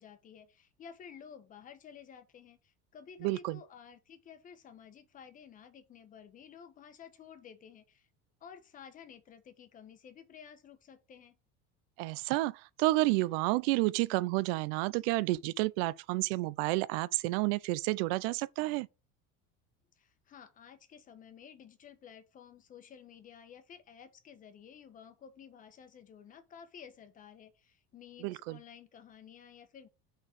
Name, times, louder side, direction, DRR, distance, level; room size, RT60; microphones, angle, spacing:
voice 1, 0.0-8.1 8.4-11.4 20.0-29.9, left 7 dB, 25° left, 1.1 m, -53 dB
voice 2, 3.2-3.6 12.0-18.9 28.2-28.6, right 20 dB, 80° right, 0.5 m, -30 dB
6.5 x 4.0 x 5.9 m
cardioid pair, 165°, 29 cm